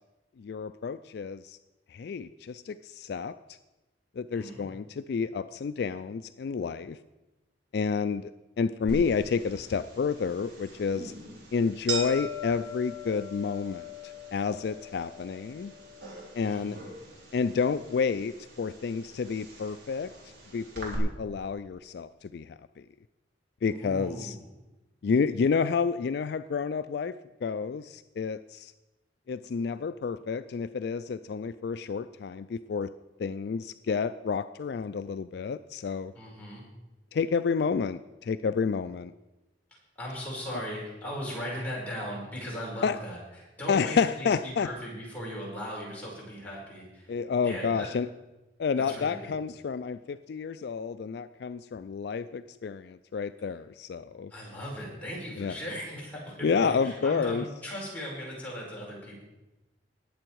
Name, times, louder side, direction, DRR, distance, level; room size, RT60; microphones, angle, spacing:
voice 1, 0.4-1.6 1.9-3.3 4.2-7.0 7.7-8.3 8.6-11.1 11.5-15.7 16.3-16.8 17.3-20.1 20.5-22.9 23.6-24.3 25.0-27.2 27.4-28.7 29.3-32.9 33.2-36.1 37.1-39.1 42.8-43.0 43.7-44.7 47.1-48.1 48.6-54.3 55.4-55.6 56.4-57.5, left 5 dB, 60° left, 13 dB, 0.3 m, -30 dB
voice 2, 4.3-4.6 16.4-16.8 23.7-24.4 36.1-36.6 39.9-43.2 43.6-47.1 47.4-47.9 48.8-49.3 54.3-59.2, equal, 10° left, -5 dB, 5.0 m, -38 dB
sound 1, 8.9-21.0, equal, 65° right, 3.8 m, -41 dB
19.5 x 7.8 x 4.7 m, 1.1 s
head